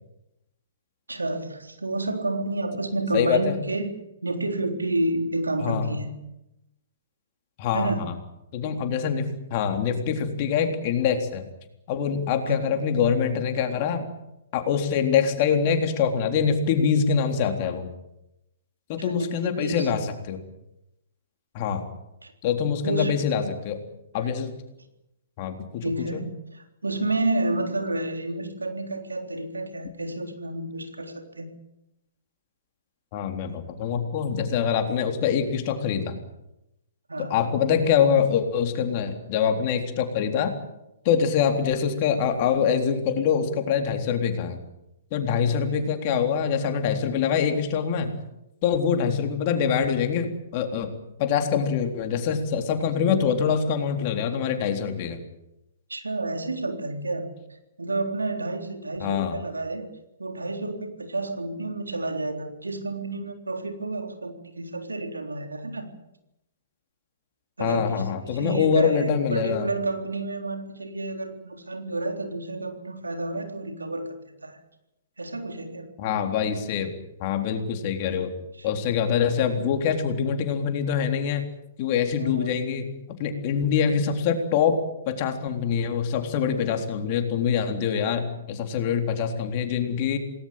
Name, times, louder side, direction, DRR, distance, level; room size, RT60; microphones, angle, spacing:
voice 1, 1.1-3.9 4.2-6.2 7.7-8.1 12.4-12.6 19.0-19.9 22.2-22.3 22.8-23.2 25.8-31.5 37.1-37.4 45.4-45.8 55.9-57.3 57.8-59.9 60.2-65.9 67.6-74.6 75.2-75.9 78.5-78.9 82.2-82.5, right 2 dB, 80° right, 5 dB, 3.7 m, -30 dB
voice 2, 3.1-3.6 5.6-5.9 7.6-8.2 8.5-11.5 11.9-14.1 14.5-17.9 18.9-20.4 21.5-21.8 22.4-23.8 24.1-24.5 25.4-26.2 33.1-36.2 37.2-40.5 41.1-44.6 45.1-48.2 48.6-50.9 51.2-55.2 59.0-59.4 67.6-69.7 76.0-76.9 77.2-78.3 78.6-81.5 81.8-82.9 83.2-84.8 85.1-90.2, left 7 dB, 40° left, 5 dB, 3.8 m, -24 dB
28.0 x 19.0 x 7.7 m, 0.89 s
figure-of-eight pair, 120°, 0 cm